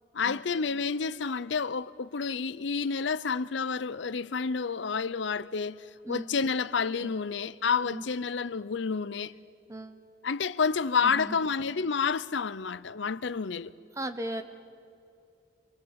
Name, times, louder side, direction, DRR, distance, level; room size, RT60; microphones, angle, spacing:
voice 1, 0.1-5.8 6.1-9.3 10.2-13.7, left 5 dB, 70° left, 0.6 m, -29 dB
voice 2, 11.0-11.4 14.0-14.4, right 1 dB, 15° right, 0.8 m, -36 dB
27.0 x 20.0 x 8.1 m
head